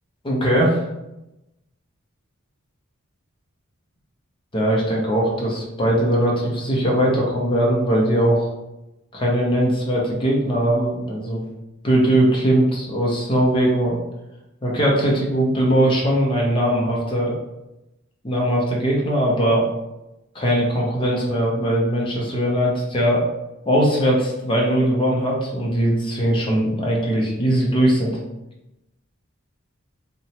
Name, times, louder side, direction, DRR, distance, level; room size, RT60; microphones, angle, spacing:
voice 1, 0.2-0.8 4.5-8.5 9.1-11.4 11.8-14.0 14.6-17.3 18.2-19.7 20.3-23.2 23.6-28.2, right 1 dB, 25° left, -3 dB, 0.6 m, -20 dB
2.9 x 2.1 x 2.7 m, 0.94 s
head